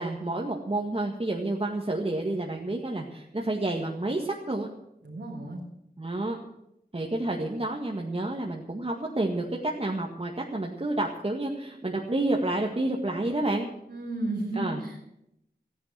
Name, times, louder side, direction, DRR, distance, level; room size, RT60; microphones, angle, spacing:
voice 1, 0.0-4.7 6.0-6.4 6.9-13.7 14.6-14.8, right 2 dB, 35° right, -1 dB, 1.9 m, -29 dB
voice 2, 5.0-5.6 13.9-15.0, right 2 dB, 85° right, -5 dB, 3.2 m, -33 dB
14.5 x 10.0 x 7.6 m, 0.81 s
wide cardioid pair, 55°, 17 cm